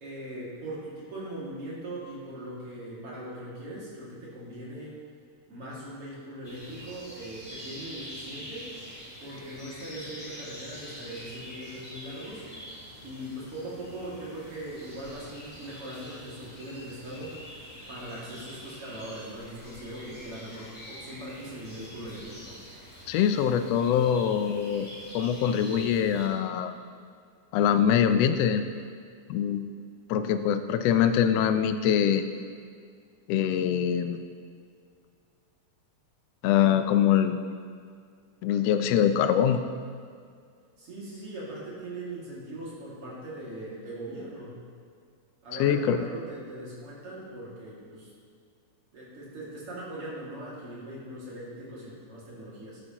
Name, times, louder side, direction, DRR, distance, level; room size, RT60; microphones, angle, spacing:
voice 1, 0.0-5.0 5.5-8.7 9.2-12.4 13.0-17.5 17.9-22.6 40.8-44.6 45.4-48.1 48.9-52.8, right 1 dB, 50° right, -6 dB, 3.1 m, -40 dB
sound 1, 6.4-26.3, equal, 15° left, 2.5 m, -45 dB
voice 2, 23.1-24.9 25.1-26.7 27.5-28.6 29.3-29.6 30.1-32.2 33.3-34.2 36.4-37.4 38.4-39.6 45.5-46.0, left 9 dB, 80° left, 8 dB, 1.5 m, -23 dB
12.5 x 9.7 x 3.0 m, 2.2 s
omnidirectional pair, 3.4 m